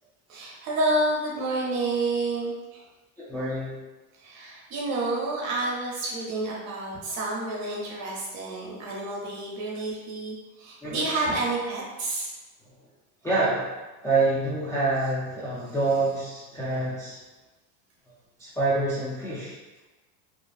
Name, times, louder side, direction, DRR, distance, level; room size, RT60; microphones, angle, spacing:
voice 1, 0.3-2.8 4.2-12.3 16.5-16.9, right 2 dB, 45° right, -3 dB, 0.8 m, -29 dB
voice 2, 3.2-3.8 10.8-11.1 13.2-13.7 14.0-17.2 18.4-19.5, right 2 dB, 10° left, -11 dB, 0.3 m, -26 dB
2.5 x 2.2 x 2.4 m, 1.2 s
supercardioid pair, 115°, 39 cm